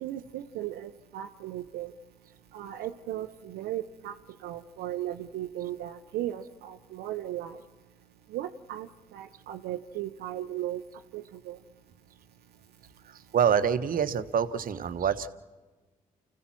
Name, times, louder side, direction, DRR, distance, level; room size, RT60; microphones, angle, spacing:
voice 1, 0.0-1.9 2.5-4.1 4.4-7.6 8.3-10.8 11.1-11.6, right 12 dB, 80° right, 5 dB, 0.7 m, -36 dB
voice 2, 13.0-15.3, right 8 dB, 60° right, 11 dB, 1.1 m, -26 dB
29.5 x 15.0 x 6.1 m, 1.3 s
hypercardioid pair, 50°, 17 cm